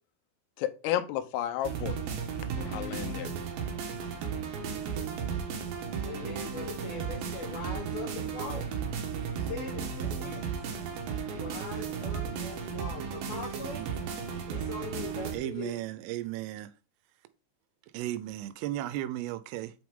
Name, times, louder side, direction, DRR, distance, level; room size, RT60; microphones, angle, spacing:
voice 1, 0.6-2.0 2.6-3.3, left 11 dB, 90° left, 3.5 m, -32 dB
sound 1, 1.6-15.4, right 6 dB, 70° right, 2.4 m, -35 dB
voice 2, 6.0-8.8 9.2-10.4 11.3-13.8 14.5-15.8, left 4 dB, 70° left, 2.4 m, -41 dB
voice 3, 15.3-16.7 17.9-19.7, right 14 dB, 90° right, 3.2 m, -35 dB
7.6 x 6.0 x 3.6 m
omnidirectional pair, 5.8 m